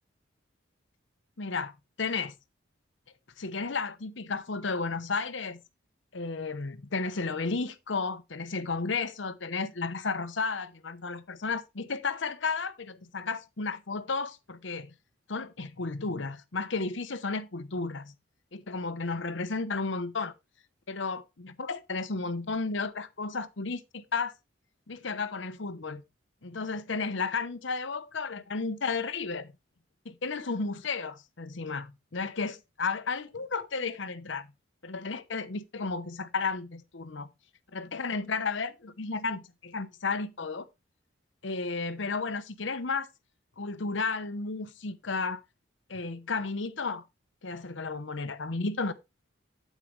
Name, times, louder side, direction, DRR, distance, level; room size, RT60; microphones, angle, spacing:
voice 1, 1.4-2.3 3.4-5.6 6.1-14.9 15.3-18.1 18.5-20.3 20.9-24.3 24.9-26.0 26.4-29.5 30.0-34.5 34.8-37.3 37.7-40.7 41.4-43.1 43.6-45.4 45.9-47.0 47.4-48.9, left 4 dB, 65° left, 0.9 m, -33 dB
8.9 x 8.4 x 3.2 m
head